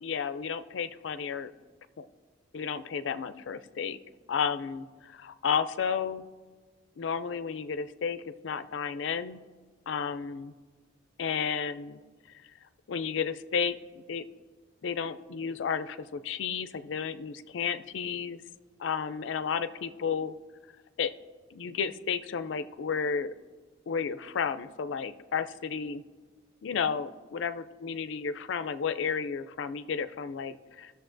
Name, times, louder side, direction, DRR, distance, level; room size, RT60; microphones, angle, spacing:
voice 1, 0.0-1.5 2.0-2.1 2.5-4.0 4.3-6.2 7.0-9.4 9.9-10.5 11.2-12.0 12.9-14.3 14.8-18.4 18.8-20.3 21.0-21.1 21.5-23.3 23.9-26.0 26.6-30.9, left 6 dB, 75° left, 13 dB, 0.4 m, -32 dB
17.5 x 6.6 x 2.6 m, 1.5 s
head